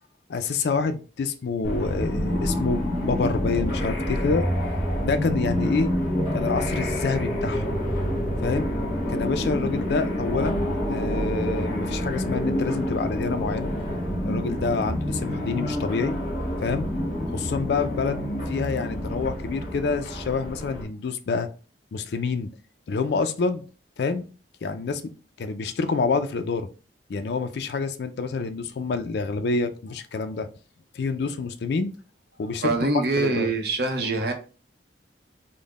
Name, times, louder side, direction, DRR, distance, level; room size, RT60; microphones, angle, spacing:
voice 1, 0.3-4.5 5.0-5.9 6.3-7.8 8.4-8.7 9.1-13.7 14.2-16.1 16.6-16.9 17.3-21.5 21.9-22.5 22.9-23.6 24.0-24.3 24.6-25.1 25.4-26.7 27.1-30.5 30.9-31.9 32.4-32.7 33.2-33.5, left 4 dB, 65° left, 9 dB, 0.4 m, -27 dB
sound 1, 1.6-20.8, equal, 45° left, 1.3 m, -27 dB
voice 2, 32.6-34.3, right 3 dB, 60° right, 4 dB, 0.7 m, -24 dB
3.6 x 2.1 x 3.5 m, 0.35 s
head